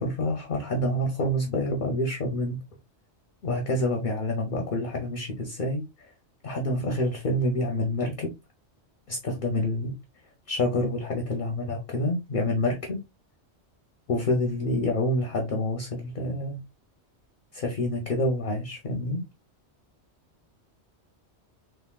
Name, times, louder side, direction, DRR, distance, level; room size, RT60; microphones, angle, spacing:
voice 1, 0.0-2.6 3.4-6.1 6.4-8.3 9.1-9.9 10.5-13.0 14.1-16.6 17.5-19.2, left 1 dB, 55° left, 0.7 m, -27 dB
3.5 x 2.4 x 2.2 m
omnidirectional pair, 1.2 m